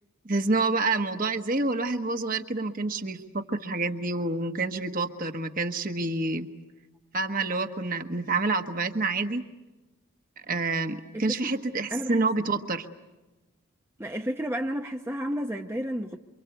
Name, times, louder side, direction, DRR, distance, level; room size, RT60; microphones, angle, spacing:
voice 1, 0.2-6.5 7.1-9.4 10.5-12.9, right 3 dB, 40° right, 6 dB, 1.4 m, -28 dB
voice 2, 11.1-11.5 11.9-12.3 14.0-16.2, equal, 10° right, 3 dB, 0.9 m, -31 dB
28.0 x 25.5 x 8.1 m, 1.1 s
head